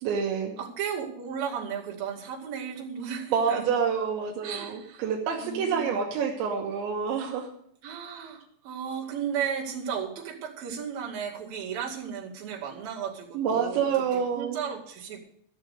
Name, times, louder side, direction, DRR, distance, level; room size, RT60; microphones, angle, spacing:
voice 1, 0.0-0.5 3.3-7.5 13.4-14.6, right 6 dB, 80° right, 1 dB, 3.5 m, -27 dB
voice 2, 0.6-3.7 4.4-5.0 5.3-6.0 7.8-15.2, right 7 dB, 55° right, -3 dB, 4.0 m, -35 dB
14.5 x 7.5 x 6.7 m, 0.67 s
omnidirectional pair, 5.2 m